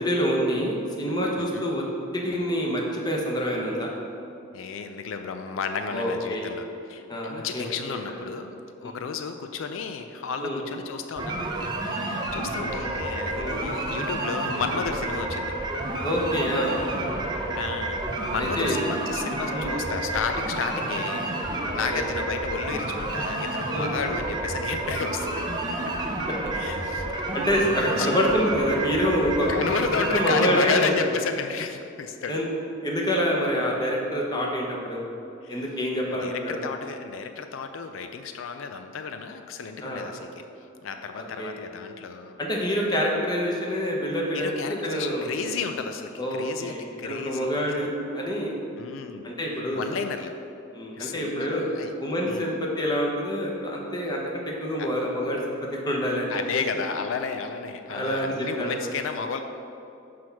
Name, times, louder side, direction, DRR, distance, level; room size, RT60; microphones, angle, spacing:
voice 1, 0.0-1.8 2.1-3.9 5.9-6.5 7.1-8.0 8.8-8.9 10.4-10.6 13.3-13.6 16.0-16.8 18.4-18.8 19.5-19.7 21.6-22.1 23.7-23.9 27.3-29.5 30.0-31.1 32.3-32.5 32.8-35.0 35.5-36.6 39.8-40.1 41.2-41.5 42.4-45.3 46.2-48.5 49.2-49.8 50.7-51.7 52.0-55.4 55.7-56.9 57.9-58.8, equal, 20° left, -2 dB, 1.0 m, -27 dB
voice 2, 1.4-1.7 4.5-8.6 8.8-15.5 17.5-25.9 26.5-27.1 27.7-28.1 29.5-32.4 35.4-35.6 36.1-40.4 40.8-42.4 44.3-47.5 48.8-49.3 49.7-50.3 51.0-51.9 52.2-52.4 54.8-54.9 56.3-59.4, left 5 dB, 85° left, 7 dB, 0.4 m, -32 dB
sound 1, 11.2-30.6, right 2 dB, 20° right, 0.7 m, -30 dB
6.2 x 4.7 x 5.7 m, 2.7 s
head